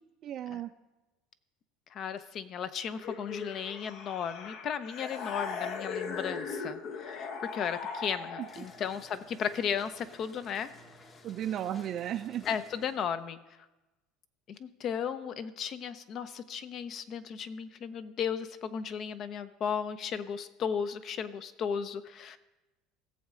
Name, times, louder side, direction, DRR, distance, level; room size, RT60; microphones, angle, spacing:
voice 1, 0.2-0.7 8.4-8.6 11.2-12.6, right 11 dB, 45° right, 6 dB, 0.4 m, -35 dB
voice 2, 1.9-10.7 12.5-13.4 14.5-22.4, left 7 dB, 45° left, 12 dB, 0.6 m, -35 dB
sound 1, 3.0-8.8, left 5 dB, 60° left, 1.0 m, -39 dB
sound 2, 8.4-13.2, left 2 dB, 30° left, 1.1 m, -55 dB
16.5 x 7.3 x 3.8 m, 1.1 s
supercardioid pair, 130°, 0 cm